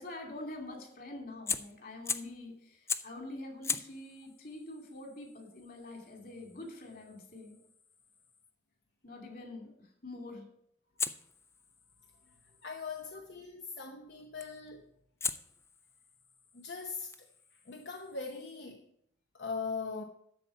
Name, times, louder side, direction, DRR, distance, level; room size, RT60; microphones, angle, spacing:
voice 1, 0.0-7.6 9.0-9.7 10.0-10.5 13.1-13.2, left 2 dB, 50° left, 2.7 m, -45 dB
Fire, 1.5-2.4 2.9-3.2 3.6-8.5 11.0-13.1 14.4-14.7 15.2-18.6, left 5 dB, 15° left, 0.4 m, -41 dB
voice 2, 12.6-14.8 16.5-17.3 17.7-18.9 19.3-20.0, left 4 dB, 70° left, 0.9 m, -40 dB
13.0 x 4.3 x 8.4 m
head